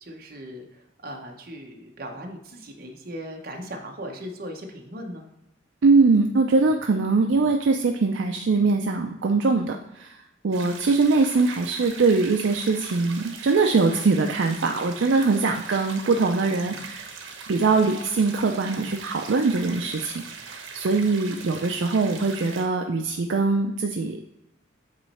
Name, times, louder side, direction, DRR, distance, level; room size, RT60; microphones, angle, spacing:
voice 1, 0.0-5.2 16.3-16.8, equal, 45° right, 2 dB, 0.9 m, -38 dB
voice 2, 5.8-10.2 10.4-17.1 17.5-24.2, right 3 dB, 70° right, 4 dB, 0.4 m, -22 dB
sound 1, 10.5-22.7, right 5 dB, 85° right, 0.9 m, -40 dB
8.2 x 3.1 x 4.2 m, 0.90 s
head